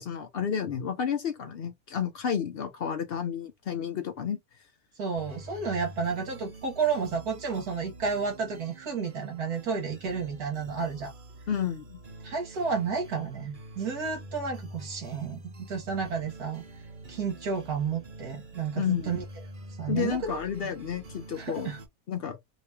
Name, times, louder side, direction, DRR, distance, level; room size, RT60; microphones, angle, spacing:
voice 1, 0.0-4.4 11.5-12.0 18.8-19.1 19.9-21.7 22.1-22.4, left 8 dB, 85° left, 0.5 m, -31 dB
voice 2, 5.0-11.1 12.2-16.6 17.1-19.2 19.8-20.7 21.4-21.8, right 5 dB, 70° right, 1.5 m, -31 dB
sound 1, 5.1-21.9, right 1 dB, 40° right, 0.8 m, -46 dB
2.9 x 2.9 x 3.3 m
omnidirectional pair, 1.7 m